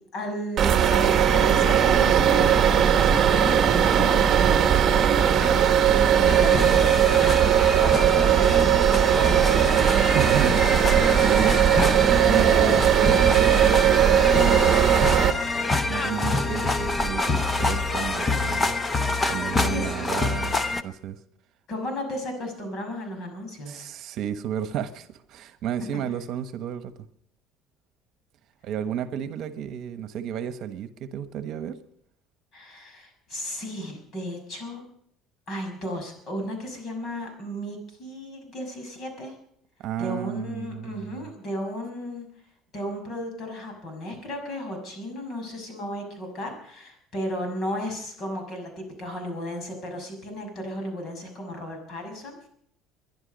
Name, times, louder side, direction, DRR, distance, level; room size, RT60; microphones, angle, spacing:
voice 1, 0.1-5.0 5.4-10.7 19.5-20.3 21.7-23.9 32.5-34.8 35.5-39.3 40.0-42.3 42.7-52.5, left 1 dB, 45° left, 4 dB, 6.0 m, -34 dB
sound 1, 0.6-15.3, right 9 dB, 35° right, 1.3 m, -19 dB
sound 2, 6.2-20.8, left 3 dB, 15° left, 0.8 m, -27 dB
voice 2, 10.1-10.6 10.9-11.6 11.9-14.9 15.9-18.8 19.3-20.6 20.8-21.2 23.7-26.9 28.6-31.8 39.8-41.3, right 9 dB, 55° right, 11 dB, 1.2 m, -32 dB
22.0 x 11.0 x 5.3 m, 0.66 s
cardioid pair, 145°, 0 cm